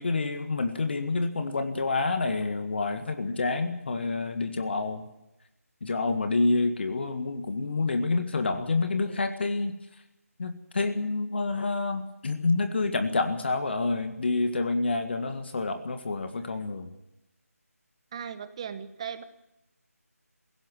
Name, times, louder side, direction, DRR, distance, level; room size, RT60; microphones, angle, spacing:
voice 1, 0.0-5.1 5.8-9.8 10.4-16.9, left 3 dB, 45° left, 8 dB, 1.8 m, -28 dB
voice 2, 18.1-19.2, right 7 dB, 20° right, 13 dB, 1.1 m, -37 dB
18.0 x 16.5 x 9.3 m, 0.90 s
figure-of-eight pair, 160°, 8 cm